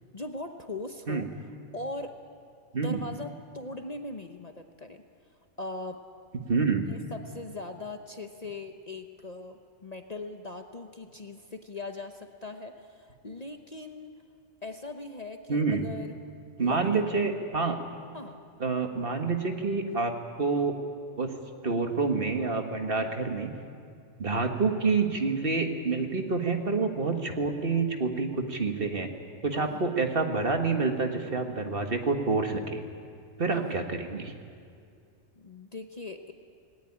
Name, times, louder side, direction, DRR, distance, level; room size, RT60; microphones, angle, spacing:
voice 1, 0.1-1.3 1.7-2.1 2.7-5.0 5.6-6.0 6.9-14.1 14.6-16.1 16.6-17.0 18.1-18.4 29.5-29.9 33.5-33.7 35.3-36.3, left 2 dB, 35° left, 5 dB, 0.9 m, -40 dB
voice 2, 6.5-6.8 15.5-15.8 16.6-17.8 18.6-20.1 20.4-20.7 21.2-21.3 21.6-23.5 24.2-29.1 29.4-32.8 33.4-34.3, right 4 dB, 45° right, 4 dB, 1.8 m, -27 dB
18.5 x 18.0 x 10.0 m, 2.4 s
omnidirectional pair, 1.3 m